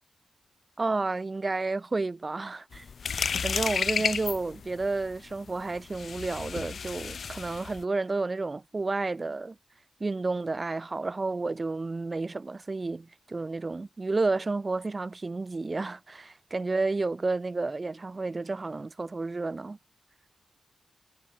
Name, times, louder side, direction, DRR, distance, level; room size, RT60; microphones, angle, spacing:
voice 1, 0.8-2.8 3.4-9.5 10.0-19.8, right 3 dB, 30° right, 3.1 m, -31 dB
sound 1, 2.7-7.8, left 6 dB, 65° left, 1.0 m, -32 dB
wide cardioid pair, 95°, 0 cm